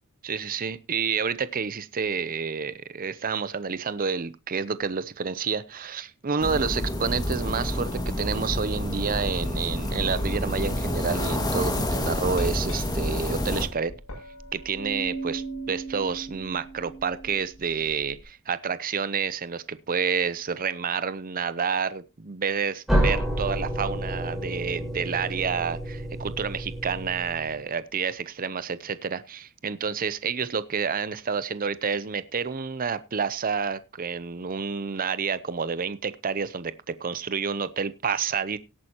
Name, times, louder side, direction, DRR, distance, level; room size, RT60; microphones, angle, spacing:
voice 1, 0.2-13.9 14.5-38.6, right 6 dB, 40° right, 14 dB, 0.7 m, -29 dB
sound 1, 6.4-13.7, left 1 dB, 20° left, 1.9 m, -28 dB
Glass, 12.4-18.2, right 3 dB, 80° left, 7.5 m, -39 dB
sound 2, 22.9-27.6, right 1 dB, ahead, 4.0 m, -29 dB
17.5 x 8.9 x 2.9 m, 0.29 s
head